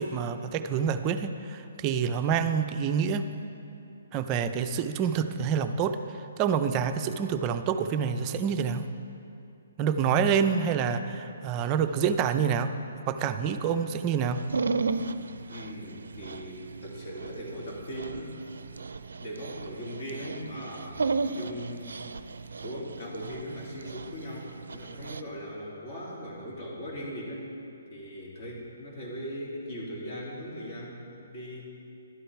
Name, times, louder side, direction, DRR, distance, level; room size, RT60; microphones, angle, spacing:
voice 1, 0.0-3.3 4.1-8.9 9.8-12.7 13.1-14.4, right 7 dB, 25° right, 8 dB, 0.5 m, -27 dB
Dog, 14.4-25.2, right 4 dB, 80° right, 0.4 m, -35 dB
voice 2, 15.5-18.3 19.2-22.0 22.6-27.5 27.9-31.0 31.3-31.7, equal, 45° left, -4 dB, 2.9 m, -39 dB
12.0 x 8.9 x 4.6 m, 2.8 s
hypercardioid pair, 150°, 0 cm